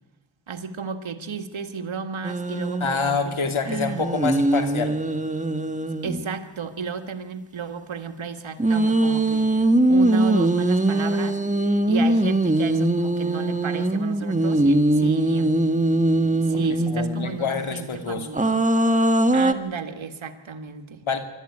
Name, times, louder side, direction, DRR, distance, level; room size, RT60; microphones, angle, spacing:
voice 1, 0.5-4.1 6.0-9.5 9.9-11.4 11.9-15.6 16.4-18.5 19.3-21.0, right 5 dB, 75° right, 6 dB, 1.9 m, -33 dB
sound 1, 2.2-2.9 3.7-6.4 8.6-17.3 18.3-19.5, right 1 dB, 15° right, 1.4 m, -21 dB
voice 2, 2.8-5.0 16.9-18.3 21.1-21.2, left 5 dB, 80° left, 6 dB, 2.6 m, -26 dB
25.0 x 13.0 x 9.8 m, 1.1 s
cardioid pair, 55°, 48 cm